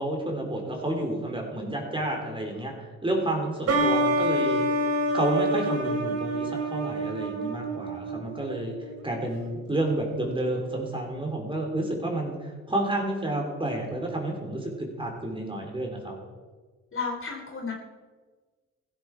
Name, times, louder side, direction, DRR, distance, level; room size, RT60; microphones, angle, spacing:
voice 1, 0.0-4.7 5.1-8.7 9.0-16.2, right 1 dB, 15° right, 1 dB, 3.6 m, -30 dB
sound 1, 3.7-9.1, right 1 dB, 55° right, 2.9 m, -27 dB
voice 2, 16.9-17.7, left 4 dB, 45° left, 2 dB, 2.9 m, -32 dB
15.5 x 13.0 x 4.8 m, 1.4 s
cardioid pair, 90°, 30 cm